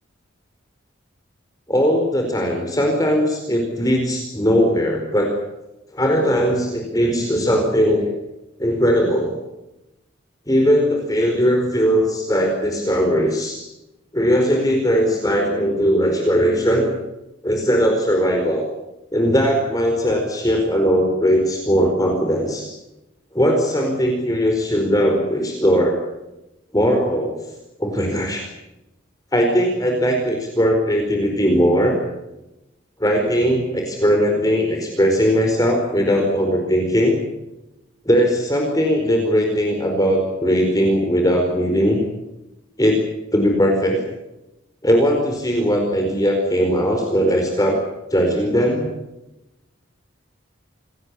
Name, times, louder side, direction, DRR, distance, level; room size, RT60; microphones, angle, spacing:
voice 1, 1.7-5.3 5.9-8.1 8.6-9.4 10.5-13.6 14.1-16.9 17.4-18.6 19.1-22.7 23.3-26.0 26.7-27.4 27.8-28.5 29.3-32.0 33.0-37.2 38.0-42.0 42.8-43.0 43.3-44.0 44.8-47.8 48.1-48.9, equal, 20° left, 2 dB, 4.7 m, -19 dB
27.5 x 18.5 x 8.5 m, 0.94 s
head